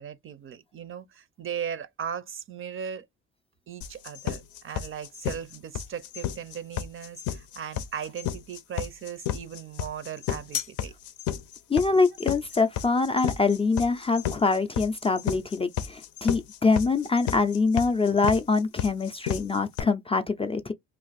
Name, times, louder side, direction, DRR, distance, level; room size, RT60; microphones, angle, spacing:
voice 1, 0.0-3.1 3.7-10.9, right 8 dB, 45° right, 0.5 m, -37 dB
sound 1, 3.8-19.8, left 10 dB, 75° left, 0.6 m, -32 dB
voice 2, 11.7-20.7, left 4 dB, 20° left, 0.4 m, -24 dB
2.4 x 2.4 x 3.9 m
cardioid pair, 90°, 30 cm